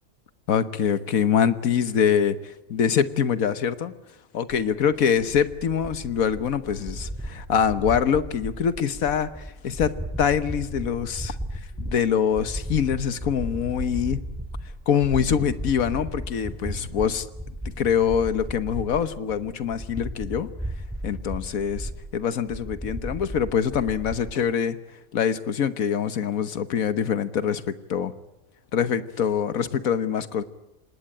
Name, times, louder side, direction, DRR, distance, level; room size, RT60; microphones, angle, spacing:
voice 1, 0.5-3.9 4.3-11.4 11.8-14.2 14.9-17.3 17.8-20.5 21.0-24.8 25.1-28.1 28.7-30.4, left 8 dB, 75° left, 13 dB, 1.6 m, -24 dB
sound 1, 4.5-24.3, equal, 5° right, 2.2 m, -35 dB
26.5 x 19.5 x 8.9 m, 0.98 s
omnidirectional pair, 1.5 m